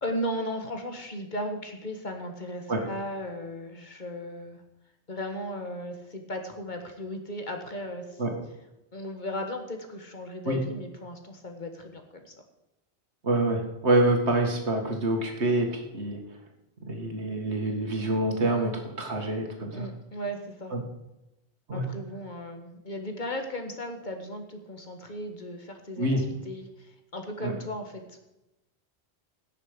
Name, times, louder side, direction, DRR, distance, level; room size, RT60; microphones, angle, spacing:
voice 1, 0.0-4.6 5.1-8.4 8.9-12.3 19.7-20.7 21.7-28.2, equal, 45° left, 5 dB, 1.5 m, -36 dB
voice 2, 13.2-16.2 16.9-19.9 20.7-20.8 21.7-21.9 26.0-26.2 27.4-27.5, right 2 dB, 80° right, 2 dB, 2.2 m, -26 dB
17.0 x 6.6 x 5.2 m, 0.93 s
omnidirectional pair, 1.1 m